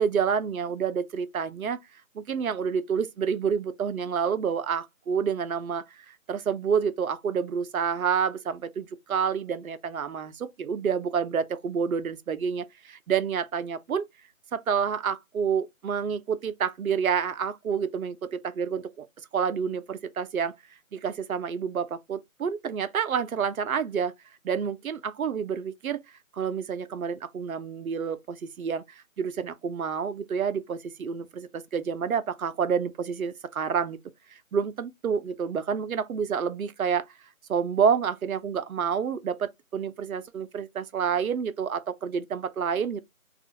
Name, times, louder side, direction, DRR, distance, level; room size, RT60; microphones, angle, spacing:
voice 1, 0.0-1.8 2.1-14.0 14.5-19.1 19.3-20.5 20.9-24.1 24.4-26.0 26.3-34.0 34.3-37.1 37.5-43.0, right 7 dB, 75° right, 0.5 m, -28 dB
2.4 x 2.3 x 2.7 m
figure-of-eight pair, 160°, 42 cm